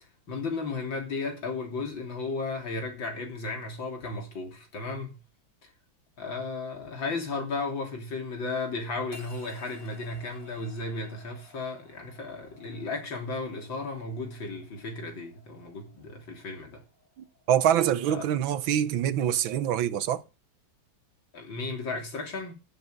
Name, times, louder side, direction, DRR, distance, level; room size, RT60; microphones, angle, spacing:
voice 1, 0.3-5.2 6.2-16.8 18.1-18.2 21.3-22.5, left 3 dB, 70° left, 4.0 m, -34 dB
sound 1, 9.1-19.5, left 1 dB, 40° left, 5.2 m, -56 dB
voice 2, 17.2-20.2, right 10 dB, 80° right, 1.6 m, -25 dB
11.5 x 10.0 x 5.3 m
omnidirectional pair, 2.2 m